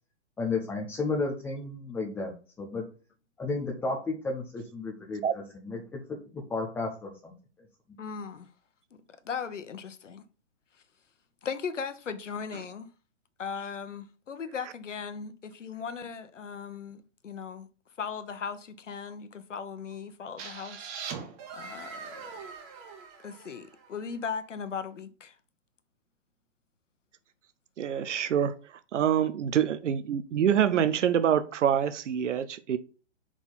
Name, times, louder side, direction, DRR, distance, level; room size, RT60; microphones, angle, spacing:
voice 1, 0.4-2.8 3.4-5.2 5.5-7.3, left 3 dB, 5° left, 0.4 m, -33 dB
voice 2, 8.0-8.5 8.9-10.2 11.4-12.9 13.4-17.7 18.0-20.8 21.5-22.3 23.2-25.3, left 6 dB, 85° left, 1.0 m, -38 dB
sound 1, 20.4-24.1, right 6 dB, 30° right, 1.2 m, -42 dB
voice 3, 27.8-28.5 28.9-32.8, right 9 dB, 80° right, 0.7 m, -26 dB
4.8 x 4.2 x 5.3 m
hypercardioid pair, 135°, 36 cm